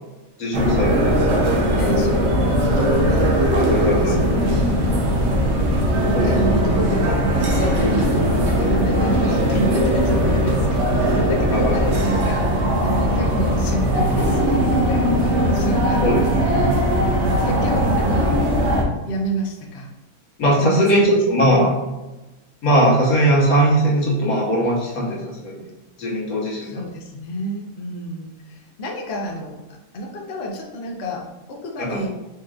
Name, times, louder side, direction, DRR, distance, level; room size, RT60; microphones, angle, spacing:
voice 1, 0.4-1.5 3.5-4.2 6.1-6.4 11.5-11.7 16.0-16.2 20.4-21.8 22.6-25.7 26.0-26.8 31.8-32.0, right 1 dB, 90° left, -4 dB, 1.6 m, -19 dB
sound 1, 0.5-18.8, equal, 60° right, 0.9 m, -19 dB
voice 2, 1.8-5.2 6.2-16.7 17.4-18.4 19.0-19.9 20.5-21.2 26.6-32.1, equal, 55° left, -1 dB, 0.8 m, -30 dB
4.5 x 3.0 x 2.3 m, 1.0 s
omnidirectional pair, 1.5 m